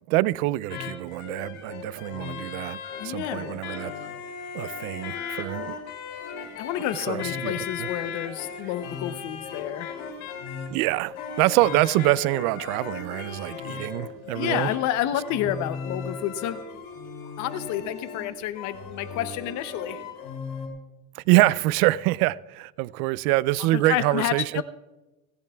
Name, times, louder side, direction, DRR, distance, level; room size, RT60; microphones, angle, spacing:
voice 1, 0.1-2.8 3.0-3.9 4.5-5.8 7.1-7.9 10.7-14.7 21.1-24.6, right 18 dB, 85° right, 0.5 m, -25 dB
sound 1, 0.7-20.7, left 6 dB, 60° left, 2.9 m, -37 dB
voice 2, 3.0-3.6 6.6-9.9 14.3-16.6 17.4-20.0 23.6-24.6, left 12 dB, 40° left, 0.7 m, -29 dB
30.0 x 10.5 x 2.3 m
cardioid pair, 165°, 43 cm